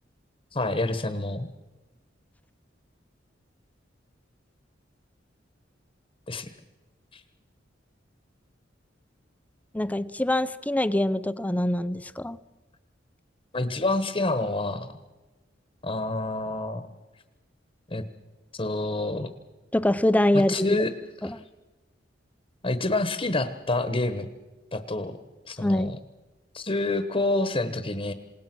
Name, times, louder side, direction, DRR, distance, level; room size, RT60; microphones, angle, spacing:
voice 1, 0.5-1.5 6.3-6.5 7.1-7.2 13.5-15.0 15.8-16.8 17.9-18.0 18.5-19.3 20.3-20.9 21.2-21.4 22.6-24.3 24.7-25.2 25.4-26.0 26.5-28.1, left 2 dB, 30° left, 10 dB, 1.2 m, -28 dB
voice 2, 9.7-12.4 19.7-20.5 21.2-21.4 25.6-25.9, left 1 dB, 10° left, 14 dB, 0.6 m, -24 dB
27.5 x 18.0 x 6.1 m, 1.2 s
head